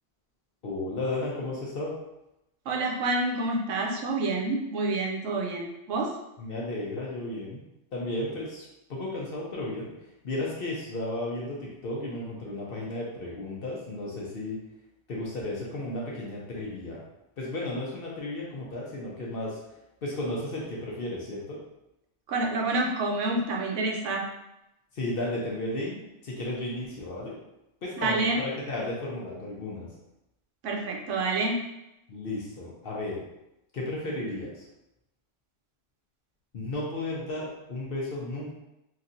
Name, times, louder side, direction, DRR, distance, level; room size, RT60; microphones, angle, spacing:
voice 1, 0.6-2.0 6.4-7.6 7.9-9.9 10.2-14.6 15.1-17.0 17.4-19.6 20.0-21.6 24.9-27.3 27.8-29.9 32.1-33.2 33.7-34.7 36.5-38.5, left 2 dB, 55° left, -4 dB, 0.8 m, -34 dB
voice 2, 2.7-6.1 22.3-24.2 28.0-28.4 30.6-31.6, right 2 dB, 75° right, 0 dB, 0.9 m, -28 dB
3.1 x 2.7 x 2.5 m, 0.89 s
omnidirectional pair, 1.3 m